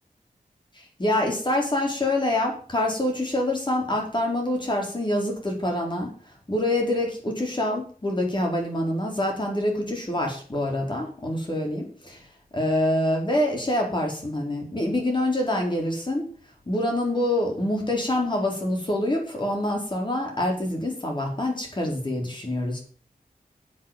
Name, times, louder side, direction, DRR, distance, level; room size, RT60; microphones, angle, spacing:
voice 1, 0.7-6.1 6.5-12.2 12.5-16.3 16.7-22.8, left 1 dB, 30° left, 0 dB, 4.3 m, -26 dB
8.8 x 8.4 x 7.4 m, 0.42 s
wide cardioid pair, 100°, 15 cm